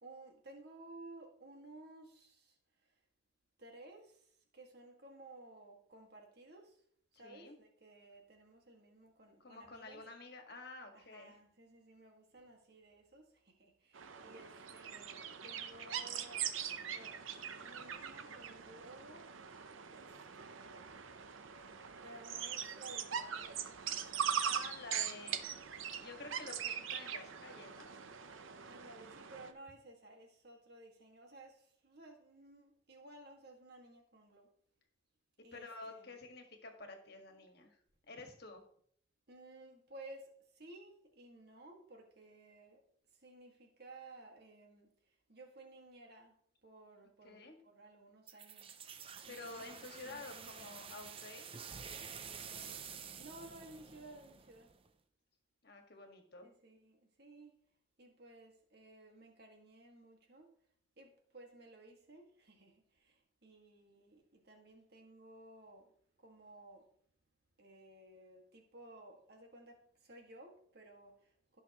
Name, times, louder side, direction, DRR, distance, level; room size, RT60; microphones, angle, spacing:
voice 1, 0.0-2.5 3.6-4.2 4.5-6.8 7.2-10.0 10.9-16.4 16.9-17.2 17.6-19.3 19.9-20.9 22.0-24.5 26.3-26.4 28.3-34.5 35.4-36.1 39.3-42.8 43.2-44.9 45.3-46.4 46.6-48.7 49.3-51.2 52.5-52.9 53.1-54.7 56.4-57.6 58.0-60.5 61.0-65.9 66.2-66.9 67.6-71.6, right 2 dB, 55° right, 1.9 m, -56 dB
voice 2, 7.2-7.6 9.4-11.4 24.4-25.5 25.8-27.9 35.5-37.8 38.1-38.6 47.2-47.5 49.3-51.6 55.6-56.5, left 3 dB, 55° left, 1.7 m, -50 dB
sound 1, 13.9-29.5, right 8 dB, 85° right, 0.8 m, -42 dB
sound 2, 48.3-54.9, right 6 dB, 30° right, 0.5 m, -50 dB
17.0 x 5.8 x 3.0 m
head